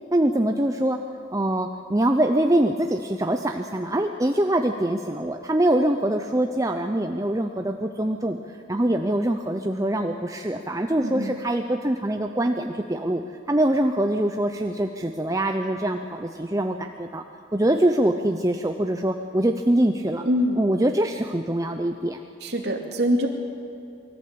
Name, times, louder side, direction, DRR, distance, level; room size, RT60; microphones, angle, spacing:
voice 1, 0.1-1.0 1.3-13.2 13.5-17.2 17.5-20.2 20.6-22.2, right 1 dB, 15° right, 5 dB, 0.7 m, -24 dB
voice 2, 11.0-11.4 20.2-20.6 22.4-23.3, equal, 60° right, 1 dB, 2.6 m, -24 dB
24.0 x 14.5 x 8.7 m, 2.7 s
head